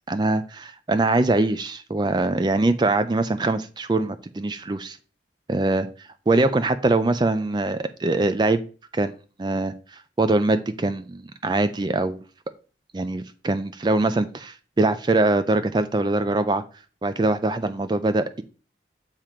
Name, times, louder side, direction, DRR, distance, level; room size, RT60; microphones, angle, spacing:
voice 1, 0.1-5.0 5.5-5.9 6.3-8.6 8.9-12.2 12.9-16.6 17.0-18.4, right 2 dB, 25° right, 11 dB, 0.4 m, -23 dB
7.4 x 2.9 x 5.0 m, 0.37 s
head